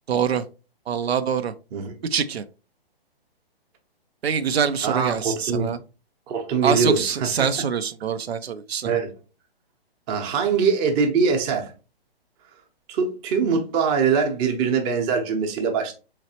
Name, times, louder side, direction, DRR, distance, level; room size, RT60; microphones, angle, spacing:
voice 1, 0.1-0.4 0.9-1.5 2.1-2.4 4.2-5.8 6.6-8.9, right 7 dB, 85° right, 0.5 m, -24 dB
voice 2, 4.8-5.7 6.3-7.3 8.8-9.1 10.1-11.7 12.9-15.9, right 5 dB, 20° right, 0.7 m, -23 dB
3.9 x 3.1 x 2.8 m
hypercardioid pair, 135°, 30 cm